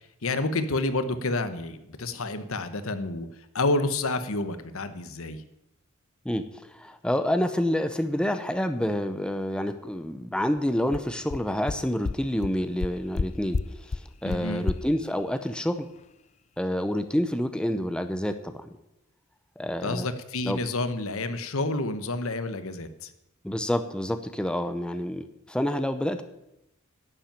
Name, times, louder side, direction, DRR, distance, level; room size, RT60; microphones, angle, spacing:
voice 1, 0.2-3.3 3.5-5.4 14.2-14.6 19.8-23.1, left 2 dB, 70° left, 11 dB, 1.1 m, -29 dB
voice 2, 6.2-13.6 13.9-15.9 16.6-18.7 19.6-20.1 20.4-20.6 23.4-26.2, equal, 5° left, 8 dB, 0.7 m, -28 dB
sound 1, 10.9-11.0 11.3-11.4 11.7-11.8 12.0-12.1 12.4-12.5 12.8-13.2 13.5-13.6 13.9-14.0 14.3-14.4 14.7-14.8, left 4 dB, 30° left, 0.4 m, -28 dB
11.0 x 7.4 x 9.0 m, 0.85 s
head